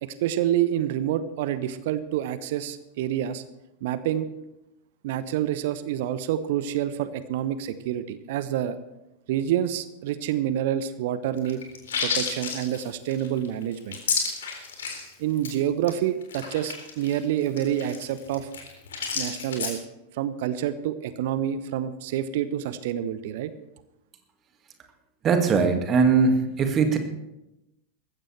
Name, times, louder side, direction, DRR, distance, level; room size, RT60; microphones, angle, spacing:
voice 1, 0.0-3.4 3.8-4.3 5.0-8.8 9.3-11.6 12.0-14.0 15.2-18.5 19.2-19.8 20.1-23.5, right 11 dB, 50° right, 14 dB, 0.9 m, -27 dB
sound 1, 11.4-15.1 15.4-15.5 15.8-15.9 16.2-19.7, left 5 dB, 65° left, 3.6 m, -31 dB
voice 2, 25.2-27.0, right 5 dB, 30° right, 6 dB, 2.1 m, -20 dB
20.0 x 15.5 x 3.4 m, 0.92 s
figure-of-eight pair, 90°, 0 cm